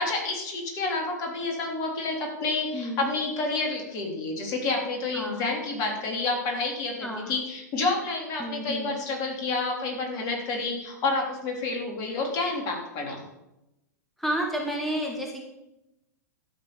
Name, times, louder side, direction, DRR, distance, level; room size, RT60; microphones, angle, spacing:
voice 1, 0.0-13.2, left 3 dB, 40° left, 2 dB, 3.5 m, -29 dB
voice 2, 2.7-3.1 5.1-5.4 7.0-7.3 8.4-9.0 14.2-15.5, equal, ahead, 0 dB, 2.2 m, -31 dB
12.5 x 7.8 x 7.1 m, 0.91 s
figure-of-eight pair, 95°, 9 cm